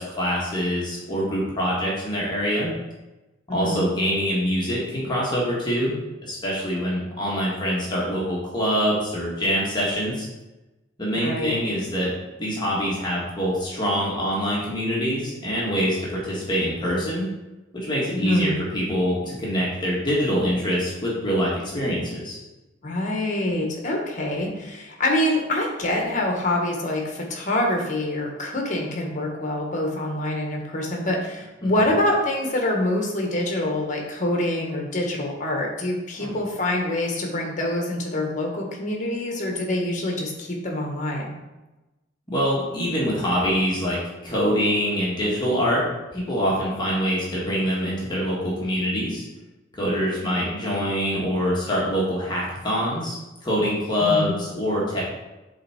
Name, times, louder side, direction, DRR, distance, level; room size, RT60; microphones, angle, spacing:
voice 1, 0.0-2.7 3.5-5.9 6.2-10.3 11.0-12.1 12.4-17.3 17.7-22.4 31.6-31.7 36.2-36.3 42.3-49.2 49.8-53.1 53.4-55.0, equal, 25° left, -6 dB, 1.4 m, -25 dB
voice 2, 3.5-3.9 11.1-11.5 18.1-18.6 22.8-41.3 54.0-54.3, left 1 dB, 40° left, 1 dB, 1.3 m, -25 dB
7.8 x 3.5 x 4.3 m, 1.1 s
head